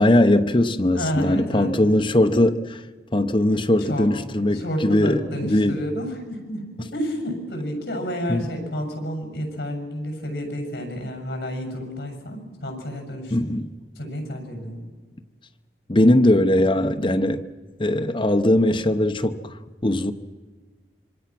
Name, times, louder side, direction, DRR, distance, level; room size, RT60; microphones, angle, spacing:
voice 1, 0.0-2.8 3.1-5.8 8.3-8.5 13.3-13.7 15.9-17.4 17.8-19.5 19.8-20.1, left 1 dB, 30° left, 0.9 m, -20 dB
voice 2, 0.9-1.7 3.8-4.1 4.5-13.4 14.0-14.9, equal, 65° left, 6.9 m, -30 dB
26.5 x 24.5 x 6.1 m
head